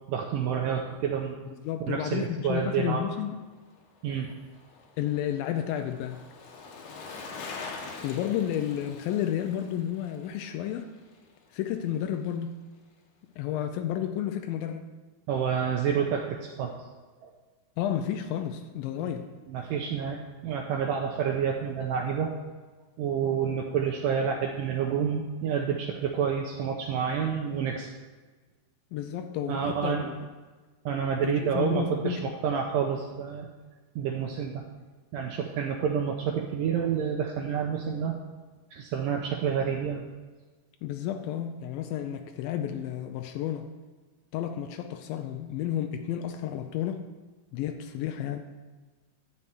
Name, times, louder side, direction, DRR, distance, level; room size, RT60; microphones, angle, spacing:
voice 1, 0.1-1.4 1.8-3.0 4.0-4.3 7.8-7.9 15.3-16.7 17.2-17.3 19.0-19.1 19.5-22.3 23.0-27.9 29.5-30.1 30.9-33.5 34.0-34.6 35.1-38.2 38.7-40.1, right 7 dB, 90° right, 1 dB, 1.9 m, -29 dB
voice 2, 1.5-3.4 5.0-6.2 8.0-10.9 11.5-12.6 13.4-14.9 17.8-19.3 28.9-30.1 31.2-32.2 40.8-43.7 44.3-47.0 47.5-48.4, left 10 dB, 90° left, 6 dB, 2.0 m, -31 dB
Bicycle, 3.6-12.0 12.3-12.4, left 4 dB, 65° left, 2.1 m, -45 dB
12.5 x 4.2 x 8.2 m, 1.3 s
omnidirectional pair, 4.7 m